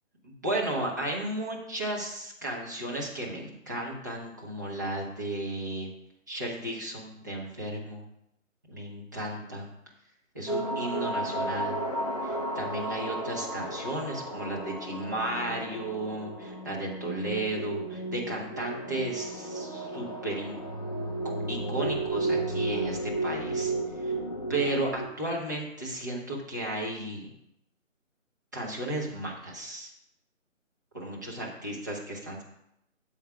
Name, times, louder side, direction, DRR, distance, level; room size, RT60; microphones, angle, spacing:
voice 1, 0.2-5.9 6.3-8.0 8.7-9.7 10.3-11.8 12.2-20.6 21.2-24.1 24.5-27.3 28.5-29.9 30.9-32.4, right 1 dB, 15° right, -4 dB, 0.8 m, -34 dB
sound 1, 10.5-25.0, right 2 dB, 30° left, 0.7 m, -33 dB
13.0 x 7.2 x 2.3 m, 0.80 s
figure-of-eight pair, 155°, 39 cm